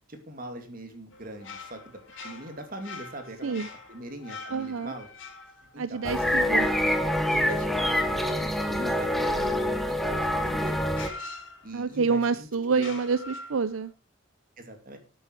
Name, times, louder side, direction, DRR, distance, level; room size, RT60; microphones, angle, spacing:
voice 1, 0.1-3.6 3.9-5.1 5.7-6.0 6.3-6.4 7.3-9.5 9.9-10.9 11.6-12.9 14.6-15.0, right 1 dB, 45° right, 6 dB, 2.5 m, -41 dB
sound 1, 1.1-7.7 10.0-10.1 10.9-12.1 12.7-13.9, left 3 dB, 65° left, 3.4 m, -44 dB
voice 2, 4.5-4.9 5.8-6.7 11.7-13.9, right 5 dB, 80° right, 14 dB, 0.6 m, -27 dB
sound 2, 6.0-11.1, left 1 dB, ahead, 1.1 m, -26 dB
11.5 x 8.7 x 4.6 m, 0.33 s
head